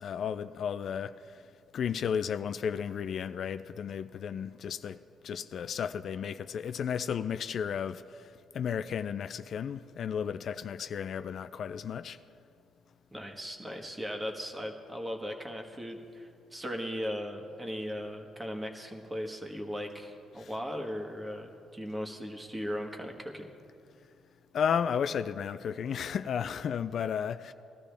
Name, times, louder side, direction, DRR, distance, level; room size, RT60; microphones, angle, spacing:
voice 1, 0.0-1.4 1.7-5.0 5.2-12.2 20.4-20.5 24.5-27.5, left 7 dB, 60° left, 0.3 m, -33 dB
voice 2, 13.1-23.5, equal, 15° right, 1.5 m, -38 dB
19.5 x 12.5 x 3.4 m
cardioid pair, 90°, 0 cm